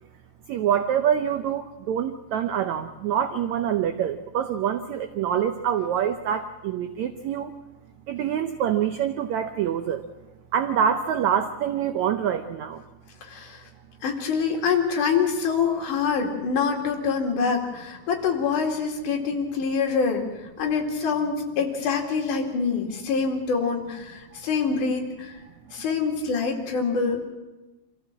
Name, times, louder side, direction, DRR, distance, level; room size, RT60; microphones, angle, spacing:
voice 1, 0.5-7.5 8.1-10.0 10.5-12.8 24.3-24.4, right 9 dB, 80° right, 8 dB, 1.6 m, -25 dB
voice 2, 13.2-13.6 14.0-20.3 20.6-25.3 25.7-27.2, left 5 dB, 60° left, 1 dB, 3.7 m, -25 dB
25.0 x 15.0 x 7.4 m, 1.1 s
omnidirectional pair, 4.2 m